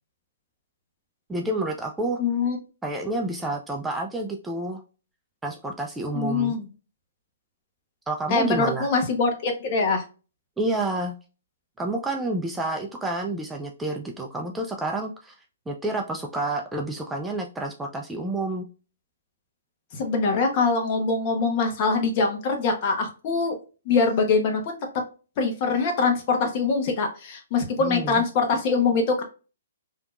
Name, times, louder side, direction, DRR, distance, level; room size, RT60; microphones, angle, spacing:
voice 1, 1.3-2.2 2.8-4.8 5.4-6.5 8.1-8.9 10.6-11.1 11.8-15.3 15.7-18.7 27.8-28.3, right 2 dB, 5° right, 1 dB, 0.4 m, -29 dB
voice 2, 2.2-2.6 6.1-6.7 8.3-10.0 19.9-23.6 23.8-24.8 25.4-29.2, left 4 dB, 40° left, 4 dB, 1.1 m, -23 dB
3.4 x 2.8 x 2.4 m, 0.33 s
hypercardioid pair, 135°, 0 cm